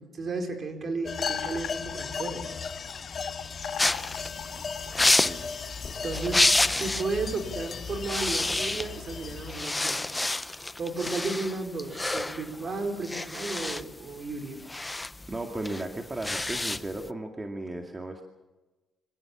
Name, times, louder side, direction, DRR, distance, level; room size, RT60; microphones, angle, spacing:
voice 1, 0.0-2.5 6.0-10.0 10.8-14.6, right 3 dB, 45° right, 4 dB, 4.8 m, -33 dB
sound 1, 1.0-9.6, left 5 dB, 45° left, 2.2 m, -36 dB
sound 2, 1.2-5.4, left 10 dB, 70° left, 0.7 m, -40 dB
sound 3, 3.8-7.1 7.4-7.6 7.9-9.1 9.5-17.1, left 2 dB, 15° left, 0.7 m, -28 dB
voice 2, 5.1-5.5 15.3-18.2, right 2 dB, 20° right, 3 dB, 2.2 m, -35 dB
25.0 x 17.0 x 7.3 m, 1.1 s
cardioid pair, 90°, 0 cm